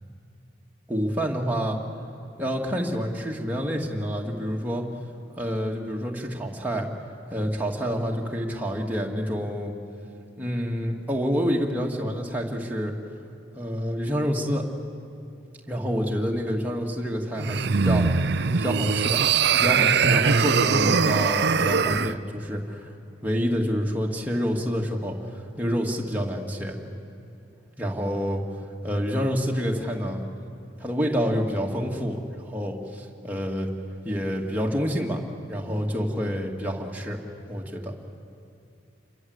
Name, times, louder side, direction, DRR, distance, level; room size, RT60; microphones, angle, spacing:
voice 1, 0.9-1.8 2.4-4.9 5.3-6.9 7.3-9.7 10.4-12.9 13.5-14.7 15.7-18.2 18.6-19.2 19.5-22.9 23.2-25.2 25.6-26.8 27.8-28.4 28.8-30.3 30.8-33.7 34.0-35.2 35.5-37.2 37.5-38.0, equal, 10° right, -1 dB, 2.3 m, -28 dB
sound 1, 17.4-22.1, right 5 dB, 60° right, 0.6 m, -21 dB
28.5 x 23.0 x 8.1 m, 2.7 s
head